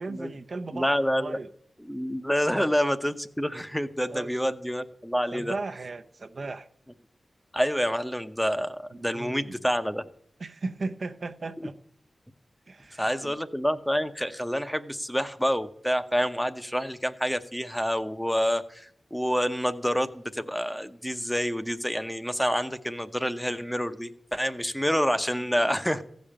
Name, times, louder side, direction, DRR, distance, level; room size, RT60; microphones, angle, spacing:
voice 1, 0.0-1.5 2.5-2.7 4.1-4.3 5.3-6.7 8.9-9.6 10.4-11.7 12.7-13.3, right 3 dB, 60° right, 0.7 m, -36 dB
voice 2, 0.7-1.4 1.8-5.5 7.5-10.0 11.6-11.7 13.0-26.0, equal, 5° left, 0.8 m, -28 dB
14.5 x 5.3 x 8.6 m
cardioid pair, 55°, 0 cm